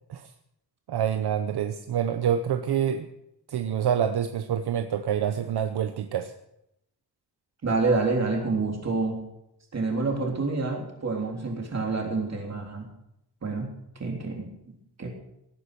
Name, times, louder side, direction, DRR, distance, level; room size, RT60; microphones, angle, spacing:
voice 1, 0.9-3.1 3.5-6.3, right 8 dB, 70° right, 9 dB, 0.9 m, -27 dB
voice 2, 7.6-9.2 9.7-12.9 13.4-13.7 14.0-14.5 15.0-15.1, right 3 dB, 40° right, 1 dB, 3.5 m, -27 dB
18.0 x 9.9 x 6.8 m, 0.82 s
wide cardioid pair, 175°, 40 cm